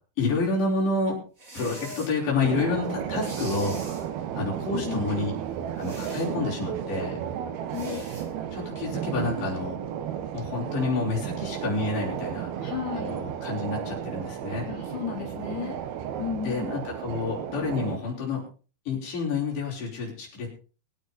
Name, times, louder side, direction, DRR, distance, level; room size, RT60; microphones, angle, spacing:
voice 1, 0.2-1.2 1.5-3.8 4.3-5.3 5.8-7.2 8.5-9.8 10.3-12.5 12.9-14.7 16.4-18.4 18.9-20.5, left 3 dB, 50° left, -3 dB, 6.4 m, -29 dB
sound 1, 1.4-2.1 3.2-4.1 5.8-6.3 7.7-8.3, right 1 dB, 20° right, 3.2 m, -42 dB
sound 2, 2.4-18.0, right 9 dB, 75° right, 3.1 m, -33 dB
voice 2, 4.7-5.1 7.7-8.0 12.6-13.2 14.7-15.8 16.2-16.8, left 8 dB, 85° left, -3 dB, 6.0 m, -33 dB
23.0 x 9.3 x 4.2 m, 0.36 s
omnidirectional pair, 4.6 m